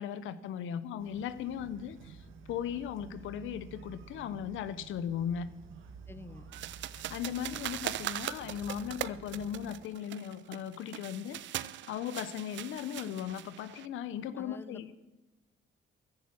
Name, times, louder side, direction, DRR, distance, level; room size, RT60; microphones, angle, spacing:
voice 1, 0.0-5.5 6.9-11.4 11.8-14.9, left 9 dB, 85° left, 14 dB, 0.8 m, -37 dB
sound 1, 1.0-9.7, right 5 dB, 85° right, 1.7 m, -51 dB
voice 2, 6.1-6.5 14.4-14.9, left 2 dB, 10° left, 12 dB, 1.0 m, -48 dB
sound 2, 6.5-13.9, right 13 dB, 70° right, 0.5 m, -40 dB
14.5 x 10.5 x 6.3 m, 1.1 s
cardioid pair, 90°, 20 cm